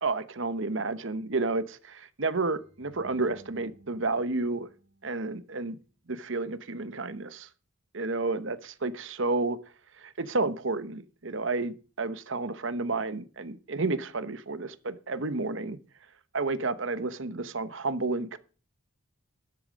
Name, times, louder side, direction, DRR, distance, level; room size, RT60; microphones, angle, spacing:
voice 1, 0.0-4.7 5.0-5.8 6.1-7.5 7.9-9.6 10.0-15.8 16.3-18.4, right 3 dB, 60° right, 1.0 m, -31 dB
sound 1, 2.5-5.7, right 2 dB, 35° right, 3.7 m, -57 dB
13.0 x 10.5 x 5.2 m
head